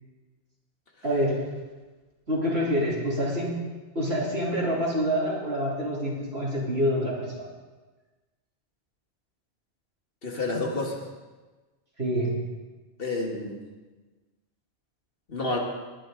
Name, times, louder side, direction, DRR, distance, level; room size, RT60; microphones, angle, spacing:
voice 1, 1.0-1.4 2.3-3.6 4.0-7.5 12.0-12.3, equal, 70° right, -4 dB, 3.5 m, -26 dB
voice 2, 10.2-11.0 13.0-13.6 15.3-15.6, left 2 dB, 55° left, 0 dB, 2.0 m, -29 dB
20.0 x 10.0 x 3.9 m, 1.2 s
omnidirectional pair, 1.1 m